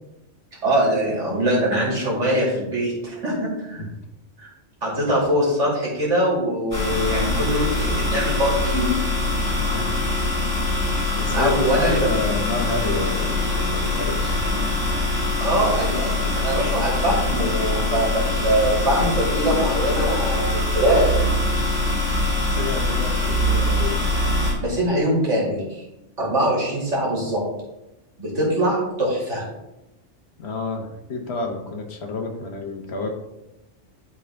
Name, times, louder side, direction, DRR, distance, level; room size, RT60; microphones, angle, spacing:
voice 1, 0.6-3.8 4.4-4.5 4.8-8.9 11.3-12.1 15.4-21.1 24.6-25.8 26.2-27.4 28.2-29.5, right 1 dB, 80° right, -5 dB, 2.8 m, -22 dB
sound 1, 6.7-24.5, left 2 dB, 20° left, 2.9 m, -23 dB
voice 2, 9.5-10.1 11.1-14.4 22.4-24.0 30.4-33.1, left 3 dB, 60° left, 3 dB, 1.3 m, -30 dB
11.0 x 3.8 x 3.4 m, 0.94 s
omnidirectional pair, 1.2 m